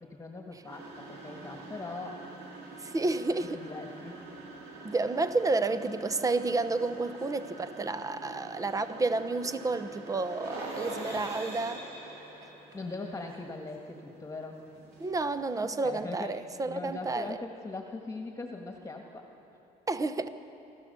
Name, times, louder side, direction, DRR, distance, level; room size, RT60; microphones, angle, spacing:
voice 1, 0.0-2.3 3.4-4.2 11.1-11.3 12.1-12.3 12.7-14.6 15.8-16.3 16.6-19.3, left 3 dB, 20° left, 2 dB, 1.7 m, -41 dB
sound 1, 0.6-15.6, right 2 dB, 70° right, 4.0 m, -45 dB
voice 2, 2.7-3.6 4.8-11.8 15.0-17.4 19.9-20.3, right 3 dB, 20° right, 11 dB, 0.9 m, -30 dB
27.0 x 14.0 x 6.9 m, 2.8 s
cardioid pair, 110°, 17 cm